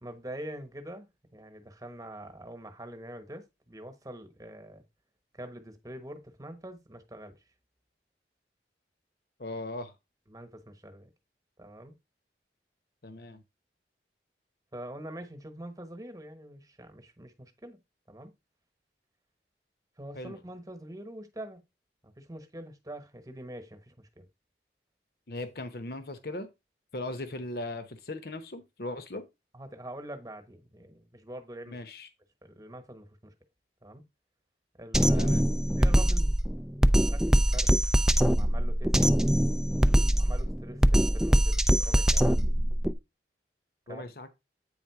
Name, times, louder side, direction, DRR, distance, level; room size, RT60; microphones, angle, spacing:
voice 1, 0.0-4.8 5.3-7.4 10.3-11.1 11.6-11.9 14.7-17.8 18.1-18.3 20.0-21.6 22.0-24.3 29.5-31.8 32.4-33.3 33.8-34.0 34.8-35.3 35.7-36.5 37.1-37.7 38.3-38.9 39.8-42.4 43.9-44.0, right 1 dB, 20° right, 1.1 m, -44 dB
voice 2, 9.4-9.9 13.0-13.4 20.1-20.3 25.3-26.5 26.9-29.2 31.7-32.1 35.1-35.4 43.9-44.3, left 2 dB, 60° left, 0.9 m, -38 dB
Drum kit, 34.9-42.9, equal, 5° right, 0.3 m, -23 dB
8.9 x 3.7 x 4.8 m
head